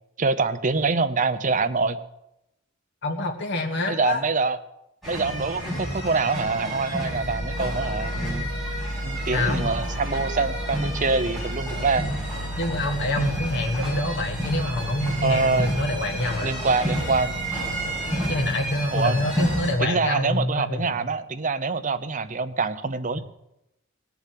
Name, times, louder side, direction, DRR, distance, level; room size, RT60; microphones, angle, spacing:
voice 1, 0.2-2.0 3.9-4.6 5.0-8.4 9.0-12.0 15.2-15.7 16.4-17.4 18.9-19.2 19.8-23.2, right 4 dB, 35° right, 10 dB, 0.8 m, -25 dB
voice 2, 3.0-4.2 9.3-9.7 12.6-16.6 18.3-21.0, left 1 dB, 55° left, 3 dB, 1.6 m, -26 dB
sound 1, 5.0-19.7, right 1 dB, ahead, 6.6 m, -30 dB
Piano, 7.2-18.5, equal, 80° left, 3.0 m, -35 dB
19.0 x 7.1 x 7.7 m, 0.85 s
head